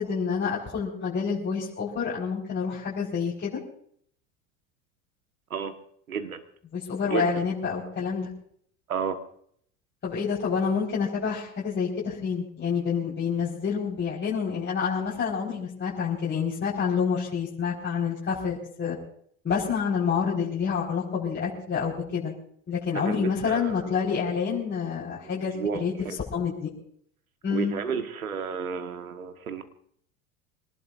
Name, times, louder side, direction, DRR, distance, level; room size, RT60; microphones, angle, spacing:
voice 1, 0.0-3.6 6.7-8.3 10.0-19.0 19.4-22.3 22.7-25.5 25.8-25.9 26.3-26.7 27.4-27.7, left 6 dB, 25° left, -5 dB, 4.5 m, -28 dB
voice 2, 6.1-6.4 7.1-7.5 8.9-9.2 22.9-23.9 25.2-26.2 27.5-29.6, right 6 dB, 90° right, 8 dB, 1.4 m, -32 dB
25.5 x 18.5 x 2.5 m, 0.64 s
hypercardioid pair, 75°, 42 cm